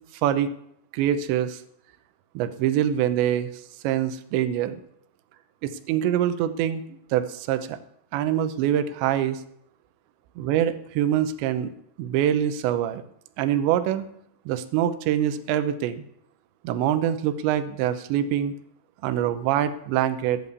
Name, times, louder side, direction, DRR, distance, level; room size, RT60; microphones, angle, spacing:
voice 1, 0.9-1.6 2.4-3.5 3.8-4.8 5.6-6.8 7.1-7.8 8.1-9.4 10.4-11.7 12.0-13.0 13.4-14.1 14.5-16.0 16.6-18.5 19.0-20.4, right 10 dB, 90° right, 11 dB, 3.2 m, -24 dB
12.5 x 9.1 x 8.2 m, 0.72 s
omnidirectional pair, 5.0 m